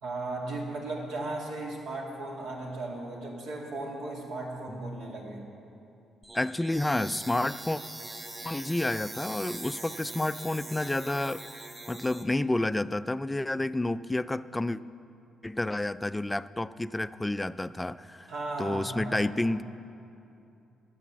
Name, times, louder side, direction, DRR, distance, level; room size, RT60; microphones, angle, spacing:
voice 1, 0.0-5.5 18.3-19.2 19.5-19.6, right 2 dB, 85° right, -2 dB, 2.4 m, -36 dB
sound 1, 6.2-12.2, right 2 dB, 30° right, 1.3 m, -42 dB
voice 2, 6.3-7.8 8.4-11.4 11.9-14.8 15.4-18.3 18.6-19.6, left 2 dB, 15° left, 15 dB, 0.3 m, -30 dB
12.0 x 8.6 x 7.4 m, 2.7 s
cardioid pair, 90°, 0 cm